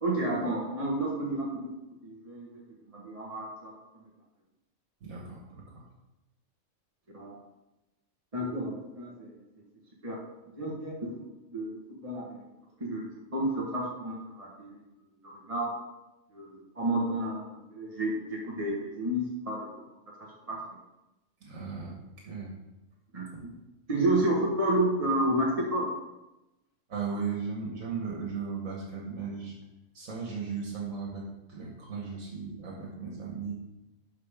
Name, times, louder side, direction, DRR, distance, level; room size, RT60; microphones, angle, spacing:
voice 1, 0.0-1.7 2.0-2.5 2.9-3.7 7.1-7.4 8.3-9.3 10.0-10.2 10.5-11.1 11.5-12.2 12.8-14.8 15.2-15.7 16.3-19.7 20.2-20.6 23.1-23.5 23.9-25.8, right 1 dB, 25° right, -4 dB, 1.4 m, -30 dB
voice 2, 5.0-5.9 21.4-22.5 23.3-23.5 26.9-29.5 29.9-33.5, right 5 dB, 80° right, -2 dB, 1.8 m, -36 dB
12.0 x 5.2 x 3.6 m, 0.97 s
omnidirectional pair, 1.4 m